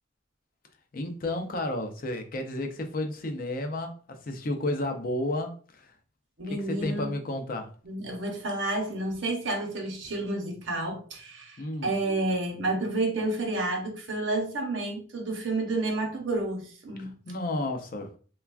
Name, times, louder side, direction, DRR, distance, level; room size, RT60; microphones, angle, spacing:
voice 1, 0.9-5.9 6.8-7.7 11.6-11.9 17.0-18.1, left 1 dB, 45° left, 0.4 m, -32 dB
voice 2, 6.4-7.1 7.8-17.1, right 2 dB, 70° right, 0.8 m, -30 dB
3.3 x 2.3 x 2.3 m
head